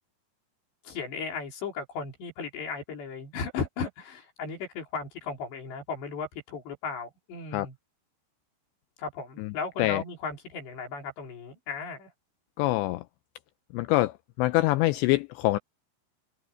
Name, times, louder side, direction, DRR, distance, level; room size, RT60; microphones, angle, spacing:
voice 1, 0.8-7.8 9.0-12.1, left 5 dB, 65° left, 6.6 m, -36 dB
voice 2, 12.6-13.0 13.7-14.1 14.4-15.6, left 18 dB, 85° left, 2.6 m, -24 dB
omnidirectional pair, 5.5 m